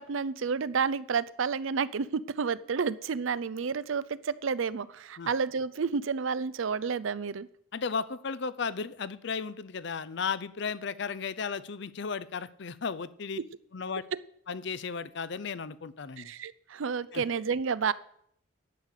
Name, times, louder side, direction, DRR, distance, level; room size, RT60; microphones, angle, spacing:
voice 1, 0.0-7.5 13.4-13.5 16.2-17.9, right 5 dB, 70° right, 18 dB, 0.5 m, -30 dB
voice 2, 7.7-13.4 13.7-14.0 14.5-16.3 17.1-17.2, left 5 dB, 55° left, 16 dB, 0.6 m, -35 dB
11.0 x 6.5 x 8.4 m, 0.69 s
head